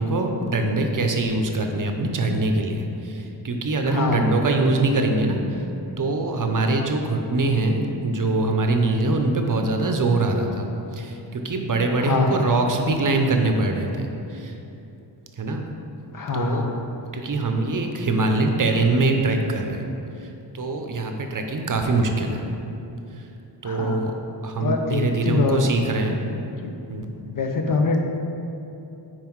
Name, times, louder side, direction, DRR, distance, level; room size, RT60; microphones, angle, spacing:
voice 1, 0.0-5.4 6.0-10.7 10.9-14.5 15.4-15.6 16.3-16.7 17.1-19.9 20.2-20.3 20.5-22.4 23.6-24.1 24.4-26.2 26.9-27.1, right 2 dB, 45° right, 4 dB, 0.7 m, -23 dB
voice 2, 3.9-4.2 12.0-12.3 16.1-16.8 23.6-24.0 24.6-25.7 26.6-26.7 27.3-28.0, left 4 dB, 50° left, 3 dB, 0.7 m, -24 dB
5.7 x 4.7 x 4.6 m, 2.9 s
wide cardioid pair, 80°, 43 cm